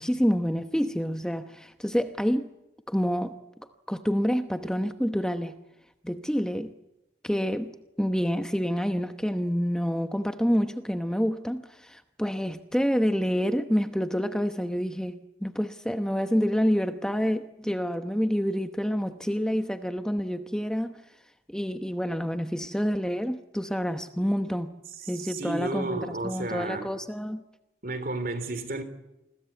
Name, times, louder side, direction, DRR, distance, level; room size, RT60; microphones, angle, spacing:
voice 1, 0.0-2.5 2.9-3.3 3.9-5.6 6.0-6.7 7.2-21.0 21.5-24.7 25.1-27.4, equal, 5° left, 0.9 m, -28 dB
voice 2, 25.2-26.9 27.8-28.8, right 2 dB, 55° right, 3.4 m, -32 dB
28.5 x 21.5 x 8.3 m
head